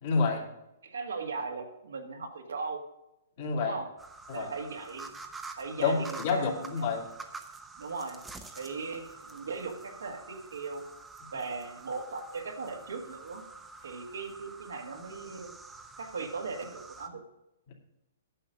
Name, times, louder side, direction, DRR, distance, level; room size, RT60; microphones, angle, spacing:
voice 1, 0.0-0.4 3.4-3.8 4.3-4.5 5.8-7.1 11.2-11.3 17.7-17.8, left 4 dB, 50° left, 0 dB, 2.7 m, -29 dB
voice 2, 0.8-2.8 3.6-3.9 4.3-5.1 5.6-6.5 6.8-6.9 7.8-8.2 8.6-10.8 11.3-13.4 13.8-15.5 16.0-17.2, right 4 dB, 80° right, 3 dB, 1.8 m, -38 dB
sound 1, 4.0-17.1, right 3 dB, 10° right, 0.9 m, -47 dB
9.9 x 6.4 x 6.4 m, 0.90 s
hypercardioid pair, 130°, 0 cm